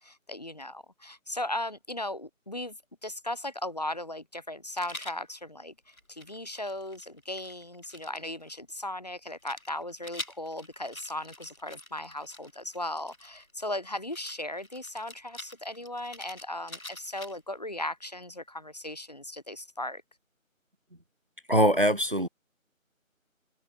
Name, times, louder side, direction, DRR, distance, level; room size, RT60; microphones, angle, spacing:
voice 1, 0.0-2.8 3.0-20.0, left 1 dB, 30° left, 3.3 m, -37 dB
Rattle, 4.8-5.2 5.9-8.5 9.4-13.5 14.1-17.6, left 1 dB, 80° left, 7.2 m, -46 dB
voice 2, 21.5-22.3, equal, 40° right, 1.2 m, -22 dB
figure-of-eight pair, 175°, 41 cm